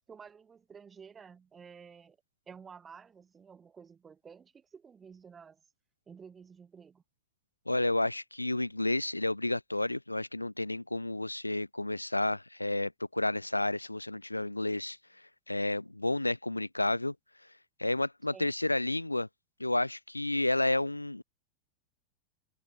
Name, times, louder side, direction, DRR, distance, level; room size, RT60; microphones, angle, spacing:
voice 1, 0.0-2.2 2.5-5.6 6.1-7.0 18.3-18.5, right 6 dB, 20° right, 6.3 m, -52 dB
voice 2, 7.7-15.0 15.5-17.1 17.8-19.3 19.6-21.2, left 2 dB, 85° left, 0.7 m, -31 dB
figure-of-eight pair, 90°, 0 cm